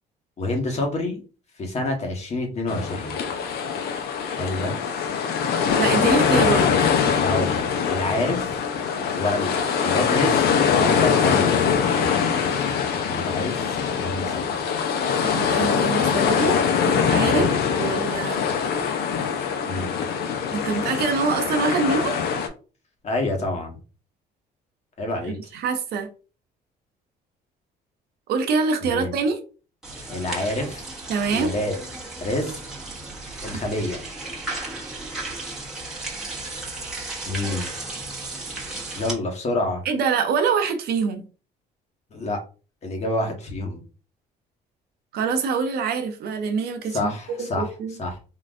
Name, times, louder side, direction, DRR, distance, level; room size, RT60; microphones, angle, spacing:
voice 1, 0.4-1.2 1.6-3.2 4.4-4.8 7.2-8.6 9.1-10.4 10.7-11.7 12.9-13.6 14.0-14.4 17.3-17.6 19.7-19.9 23.0-23.8 25.0-25.3 28.8-29.1 30.1-30.9 31.3-31.7 32.2-32.6 33.4-34.0 37.3-37.7 38.9-39.8 42.1-42.4 42.8-43.8 46.9-47.7 48.0-48.2, left 2 dB, 40° left, 2 dB, 1.2 m, -27 dB
sound 1, 2.7-22.5, left 7 dB, 70° left, 0.6 m, -23 dB
voice 2, 5.8-6.7 15.2-17.5 17.8-18.4 20.5-22.2 25.3-26.1 28.3-29.4 31.1-31.5 39.8-41.2 45.1-48.0, right 5 dB, 70° right, 7 dB, 0.7 m, -25 dB
sound 2, 29.8-39.1, right 2 dB, 5° right, 1.1 m, -34 dB
3.8 x 2.5 x 2.4 m, 0.35 s
cardioid pair, 110°, 17 cm